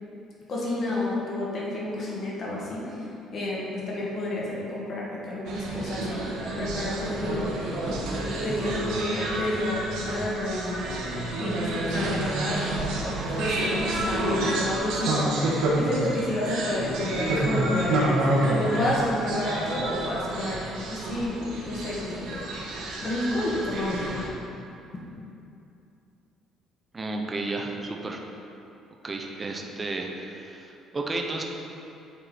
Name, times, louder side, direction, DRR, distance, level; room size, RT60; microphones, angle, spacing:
voice 1, 0.5-2.9 3.3-7.5 8.4-10.8 11.4-15.3 15.7-18.2 18.5-20.6 20.9-22.4 23.0-24.2, left 1 dB, 35° left, -5 dB, 1.5 m, -30 dB
sound 1, 5.5-24.3, right 1 dB, 90° right, 1.3 m, -29 dB
voice 2, 26.9-28.2 29.0-31.4, right 2 dB, 20° right, 2 dB, 0.5 m, -32 dB
8.0 x 4.5 x 4.2 m, 2.7 s
cardioid pair, 160°, 0 cm